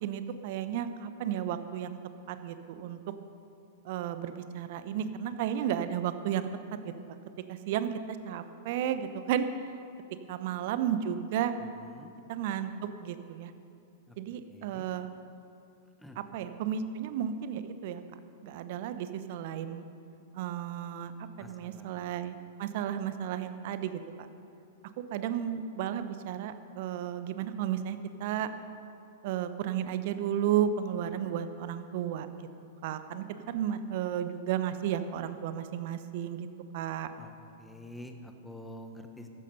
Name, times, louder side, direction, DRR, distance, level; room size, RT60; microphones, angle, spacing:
voice 1, 0.0-2.0 2.3-3.0 3.8-6.5 6.8-6.9 7.5-9.5 10.3-11.5 12.3-12.7 13.0-13.5 14.2-15.1 16.2-18.0 18.4-19.8 20.3-21.1 21.4-24.0 25.0-28.5 29.2-32.5 32.8-36.5 36.7-37.1, right 10 dB, 50° right, 11 dB, 0.9 m, -33 dB
voice 2, 11.6-12.1 14.1-14.2 14.5-14.8 16.0-16.2 21.4-21.9 37.2-37.3 37.6-39.3, left 1 dB, 5° left, 5 dB, 1.3 m, -47 dB
14.0 x 12.0 x 5.5 m, 2.8 s
figure-of-eight pair, 100°, 0 cm